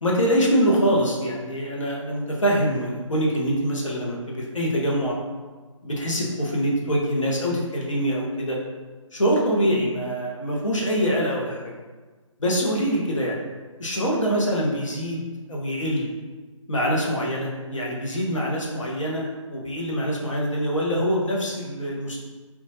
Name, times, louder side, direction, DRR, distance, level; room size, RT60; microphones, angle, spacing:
voice 1, 0.0-5.2 5.8-8.6 9.1-11.7 12.4-13.4 13.8-15.2 15.5-16.1 16.7-22.2, equal, 70° left, -3 dB, 1.0 m, -24 dB
4.2 x 2.4 x 2.7 m, 1.3 s
figure-of-eight pair, 150°, 17 cm